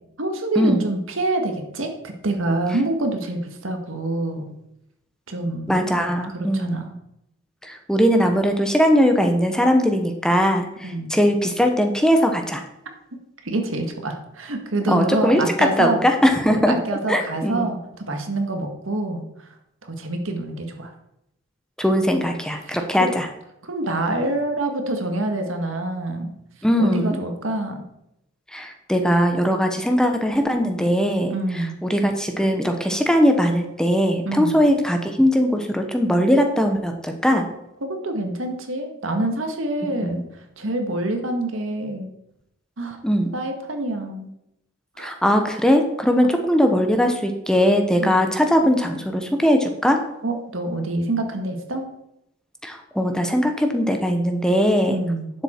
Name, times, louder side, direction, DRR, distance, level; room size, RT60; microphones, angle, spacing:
voice 1, 0.2-4.6 5.3-6.0 6.3-6.9 10.8-11.2 13.4-16.0 16.5-19.5 19.8-20.9 22.7-23.1 23.6-26.3 26.8-27.8 31.3-31.8 34.2-34.6 37.8-40.2 40.6-42.1 42.8-43.0 43.3-44.3 45.0-45.1 48.0-48.3 50.2-51.9 54.9-55.3, right 2 dB, 85° right, 5 dB, 1.6 m, -26 dB
voice 2, 5.7-6.8 7.6-12.6 14.9-16.7 17.1-17.7 21.8-23.3 26.6-27.2 28.5-37.4 40.0-40.2 43.0-43.3 45.0-50.0 52.6-55.0, equal, 5° left, 5 dB, 0.9 m, -20 dB
11.0 x 7.3 x 4.4 m, 0.84 s
head